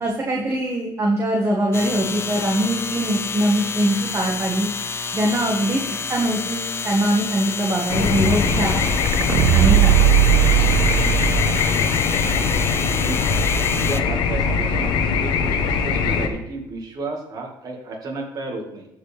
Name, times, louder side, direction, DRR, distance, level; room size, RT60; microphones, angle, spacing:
voice 1, 0.0-4.7 5.1-8.8 9.5-9.9, right 1 dB, 35° right, -1 dB, 1.7 m, -22 dB
sound 1, 1.7-14.0, left 5 dB, 30° left, 0.7 m, -29 dB
sound 2, 7.9-16.3, left 5 dB, 80° left, 1.1 m, -21 dB
sound 3, 9.0-12.0 12.3-12.4, right 14 dB, 70° right, 0.4 m, -17 dB
voice 2, 12.1-12.7 13.0-13.4 13.8-18.9, right 2 dB, 50° right, 0 dB, 1.9 m, -33 dB
13.5 x 5.2 x 3.5 m, 0.89 s
cardioid pair, 100°, 8 cm